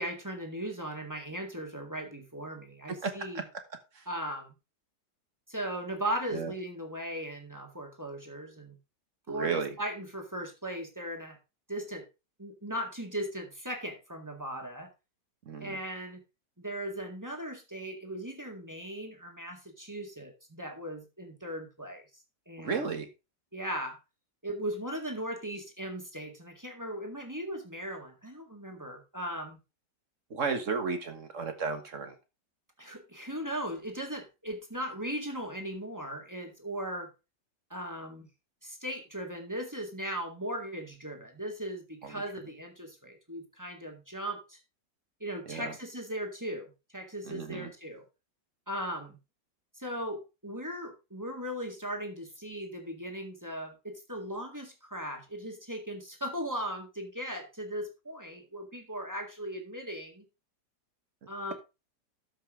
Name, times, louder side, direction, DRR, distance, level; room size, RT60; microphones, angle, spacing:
voice 1, 0.0-3.5 4.1-4.5 5.5-8.8 9.3-11.4 11.7-12.0 12.4-14.9 15.6-16.2 16.6-22.0 22.5-22.9 23.5-24.0 24.4-29.6 32.8-37.1 37.7-38.3 38.6-44.6 45.2-48.0 48.7-49.2 49.8-60.2 61.3-61.5, equal, 10° right, 3 dB, 1.8 m, -38 dB
voice 2, 3.0-3.4 3.9-4.0 6.3-6.5 9.3-9.7 15.4-15.8 22.6-23.1 30.3-32.2 42.0-42.2 45.5-45.8 47.2-47.7, right 5 dB, 50° right, 7 dB, 1.7 m, -34 dB
13.0 x 5.4 x 3.7 m, 0.27 s
omnidirectional pair, 1.9 m